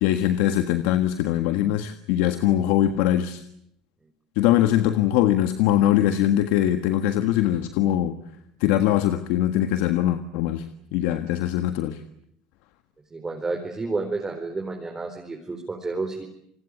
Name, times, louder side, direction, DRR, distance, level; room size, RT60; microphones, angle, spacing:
voice 1, 0.0-3.4 4.3-8.2 8.6-10.7 10.9-12.0, left 12 dB, 75° left, 9 dB, 1.6 m, -22 dB
voice 2, 13.1-16.2, right 3 dB, 20° right, 2 dB, 4.6 m, -30 dB
29.0 x 20.5 x 8.6 m, 0.73 s
supercardioid pair, 95°, 3 cm